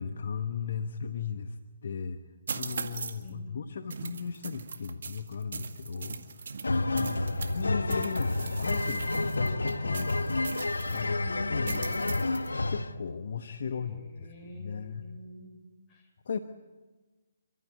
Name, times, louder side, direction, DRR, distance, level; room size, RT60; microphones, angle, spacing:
voice 1, 0.0-1.6 1.8-2.2 2.5-7.3 7.5-11.2 11.5-12.2 12.7-15.0 16.2-16.4, left 6 dB, 60° left, 8 dB, 1.1 m, -37 dB
sound 1, 2.5-3.3 3.9-7.6 7.9-11.1 11.7-12.5, right 5 dB, 60° right, 2.0 m, -40 dB
voice 2, 3.2-4.1 11.0-11.7 13.6-15.6 15.9-16.1, left 1 dB, 20° left, -2 dB, 6.3 m, -46 dB
sound 2, 6.6-12.9, left 2 dB, 80° left, 1.2 m, -29 dB
29.0 x 13.5 x 8.4 m, 1.2 s
figure-of-eight pair, 140°, 0 cm